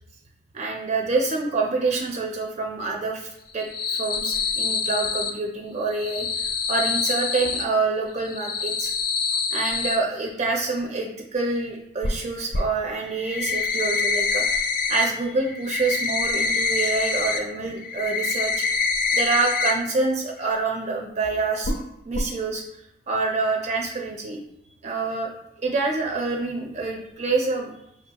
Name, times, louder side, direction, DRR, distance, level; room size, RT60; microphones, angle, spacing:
voice 1, 0.5-8.9 9.5-18.6 19.1-21.7 22.1-22.6 23.1-24.4 24.8-25.3 25.6-27.7, right 3 dB, 40° right, 1 dB, 0.4 m, -26 dB
sound 1, 3.5-5.3 5.9-7.6 8.2-10.0 12.0-12.1 12.5-12.6 13.1-15.1 15.4-17.4 17.7-19.7 20.0-20.1 20.5-20.6 21.6-21.8 22.1-22.2, left 4 dB, 50° left, 0.4 m, -25 dB
5.3 x 2.3 x 2.8 m, 0.80 s
head